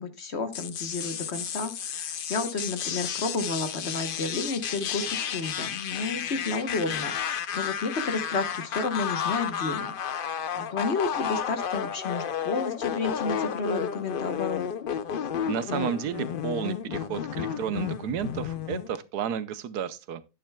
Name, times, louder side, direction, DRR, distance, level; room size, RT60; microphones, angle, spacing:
voice 1, 0.0-7.1 7.5-9.9 10.5-14.6, left 3 dB, 45° left, 1.2 m, -31 dB
sound 1, 0.5-19.0, left 8 dB, 65° left, 0.5 m, -32 dB
voice 2, 15.5-20.3, right 9 dB, 80° right, 1.3 m, -32 dB
11.5 x 9.8 x 2.2 m
omnidirectional pair, 1.7 m